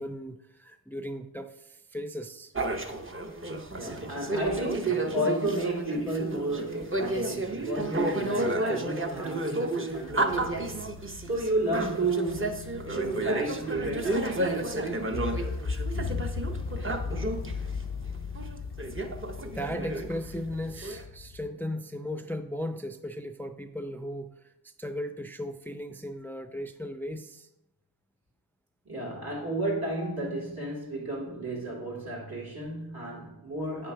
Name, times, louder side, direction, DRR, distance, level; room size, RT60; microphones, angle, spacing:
voice 1, 0.0-2.5 17.4-17.5 19.5-27.5, equal, 5° left, 0.4 m, -37 dB
sound 1, 2.6-17.5 18.1-18.2 18.4-21.0, right 2 dB, 35° right, 0.7 m, -32 dB
voice 2, 3.8-10.8 11.3-15.8 28.8-33.9, right 2 dB, 70° right, 2.4 m, -33 dB
sound 2, 10.2-21.5, left 4 dB, 85° left, 0.7 m, -37 dB
8.2 x 3.7 x 5.7 m
wide cardioid pair, 55°, 38 cm